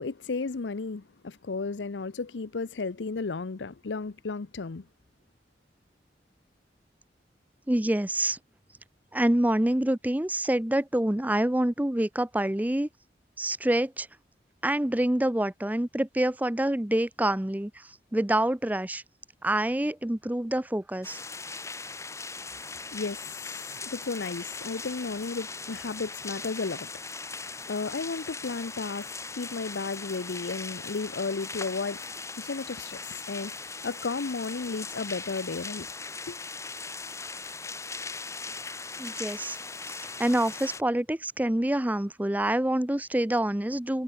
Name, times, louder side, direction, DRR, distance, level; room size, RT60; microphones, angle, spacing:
voice 1, 0.0-4.8 22.9-27.0 27.6-32.0 32.4-35.9 36.3-36.4, left 4 dB, 90° left, 0.7 m, -34 dB
voice 2, 7.7-8.4 9.1-12.9 13.4-14.1 14.6-19.0 19.4-21.2 39.0-39.6 39.8-44.0, right 1 dB, 10° right, 0.5 m, -27 dB
sound 1, 21.0-40.8, left 4 dB, 15° left, 3.6 m, -39 dB
head